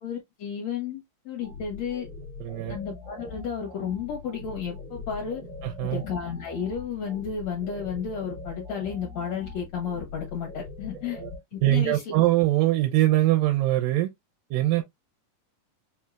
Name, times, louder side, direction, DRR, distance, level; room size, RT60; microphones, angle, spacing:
voice 1, 0.0-2.1 2.7-5.4 5.8-11.2 11.5-12.1, left 7 dB, 60° left, 2.1 m, -32 dB
sound 1, 1.4-11.4, left 3 dB, 40° left, 1.8 m, -42 dB
voice 2, 2.4-2.8 5.6-6.0 11.1-11.3 11.6-14.1 14.5-14.8, right 15 dB, 85° right, 2.3 m, -22 dB
5.6 x 2.8 x 2.4 m
omnidirectional pair, 3.9 m